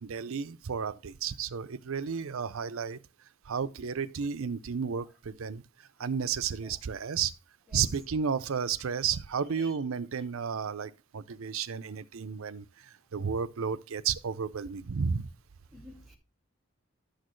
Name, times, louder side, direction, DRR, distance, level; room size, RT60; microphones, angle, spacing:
voice 1, 0.0-3.0 3.5-7.3 7.7-15.3, right 6 dB, 70° right, 0.5 m, -32 dB
voice 2, 15.7-16.2, equal, ahead, 2.3 m, -51 dB
11.5 x 6.5 x 3.1 m
head